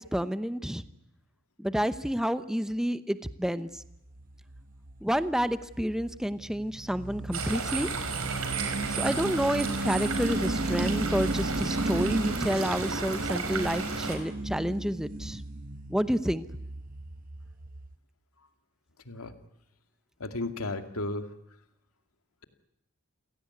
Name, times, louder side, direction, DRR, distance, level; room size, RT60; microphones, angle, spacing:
voice 1, 0.1-0.8 1.6-3.7 5.0-7.9 9.0-15.4 15.9-16.4, equal, ahead, 12 dB, 0.9 m, -29 dB
sound 1, 3.8-17.9, right 2 dB, 40° right, 1.0 m, -35 dB
sound 2, 7.3-14.2, right 4 dB, 80° right, 4.8 m, -33 dB
voice 2, 20.2-21.3, left 2 dB, 85° left, 8 dB, 2.3 m, -34 dB
28.5 x 17.5 x 9.6 m, 0.84 s
head